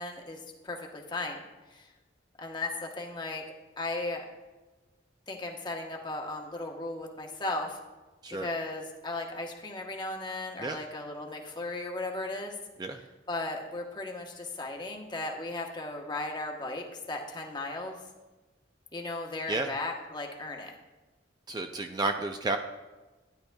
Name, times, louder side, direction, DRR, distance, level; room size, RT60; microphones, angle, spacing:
voice 1, 0.0-1.4 1.7-1.9 2.4-3.4 3.8-4.2 5.3-7.8 8.3-12.6 13.3-18.0 18.9-20.7, left 2 dB, 25° left, 1 dB, 1.0 m, -36 dB
voice 2, 21.5-22.6, right 2 dB, 20° right, 5 dB, 0.3 m, -31 dB
13.0 x 10.0 x 2.3 m, 1.2 s
head